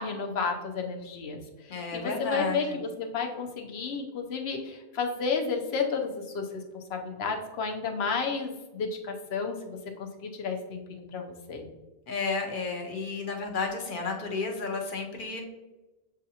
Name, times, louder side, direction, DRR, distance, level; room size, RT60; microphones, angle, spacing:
voice 1, 0.0-11.7, left 5 dB, 90° left, 3 dB, 0.9 m, -32 dB
voice 2, 1.7-2.8 12.1-15.4, left 4 dB, 60° left, 2 dB, 0.9 m, -32 dB
7.3 x 2.5 x 2.7 m, 1.1 s
omnidirectional pair, 1.0 m